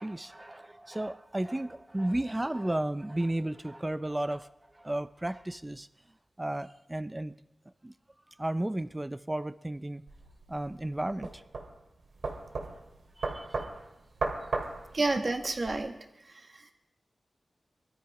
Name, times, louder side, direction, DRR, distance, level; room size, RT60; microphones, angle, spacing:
voice 1, 0.0-5.9 6.4-7.3 7.8-7.9 8.4-10.0 10.5-11.4 13.2-13.7, right 1 dB, 15° right, 13 dB, 0.6 m, -33 dB
sound 1, 10.1-15.7, right 3 dB, 85° right, 2.3 m, -36 dB
voice 2, 14.9-16.0 16.3-16.6, right 2 dB, 45° right, 3 dB, 1.8 m, -30 dB
21.0 x 13.0 x 5.0 m, 0.89 s
wide cardioid pair, 100°, 0 cm